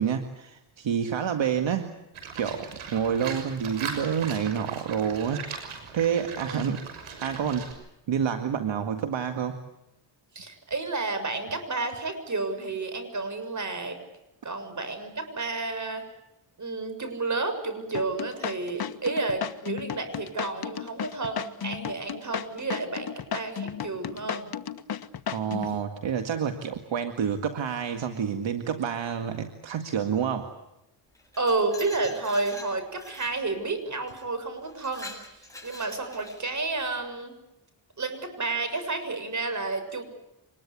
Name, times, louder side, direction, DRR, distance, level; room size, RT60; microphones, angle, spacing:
voice 1, 0.0-1.9 2.3-5.4 5.9-6.8 7.2-7.7 8.1-9.6 25.3-30.5, right 7 dB, 65° right, 7 dB, 2.0 m, -28 dB
Livestock farm animals working animals, 2.1-7.7, right 6 dB, 85° right, 6.4 m, -39 dB
voice 2, 10.3-14.0 14.4-16.0 16.6-24.5 31.4-35.1 35.6-37.3 38.0-40.0, right 3 dB, 35° right, 9 dB, 6.9 m, -31 dB
sound 1, 17.9-25.8, left 8 dB, 50° left, 1.4 m, -34 dB
Glass, 31.1-33.4 34.1-34.2 34.6-36.7, left 2 dB, 5° left, 7.8 m, -45 dB
25.5 x 21.5 x 8.5 m, 0.90 s
cardioid pair, 85°, 48 cm